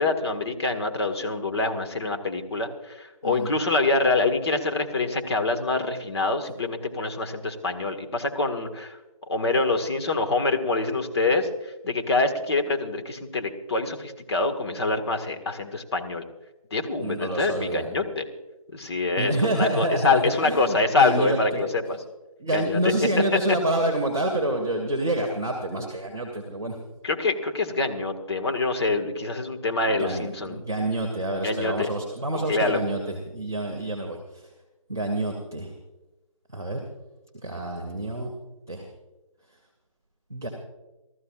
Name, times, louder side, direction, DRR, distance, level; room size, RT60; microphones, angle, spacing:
voice 1, 0.0-9.0 9.3-16.3 16.7-18.3 18.7-22.0 22.5-22.9 27.0-30.6 31.4-31.9 32.3-32.8, left 3 dB, 45° left, 5 dB, 1.8 m, -25 dB
voice 2, 3.2-3.5 17.0-17.9 19.2-21.6 22.4-26.8 29.9-34.5 34.9-35.7 36.5-36.9 37.4-38.3 38.7-38.9 40.3-40.5, right 1 dB, 5° right, -9 dB, 0.4 m, -28 dB
29.0 x 14.0 x 2.5 m, 1.1 s
figure-of-eight pair, 170°, 18 cm